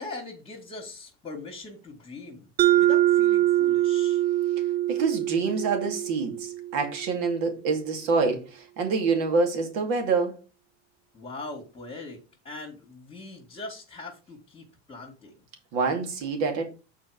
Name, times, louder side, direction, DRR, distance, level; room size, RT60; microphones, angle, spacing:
voice 1, 0.0-2.5 2.8-4.2 11.1-15.3, left 3 dB, 20° left, 2.3 m, -41 dB
Mallet percussion, 2.6-7.1, right 13 dB, 30° right, 0.3 m, -24 dB
voice 2, 4.9-10.4 15.7-16.7, right 4 dB, 65° right, 2.5 m, -26 dB
6.8 x 4.5 x 5.0 m
supercardioid pair, 105°, 36 cm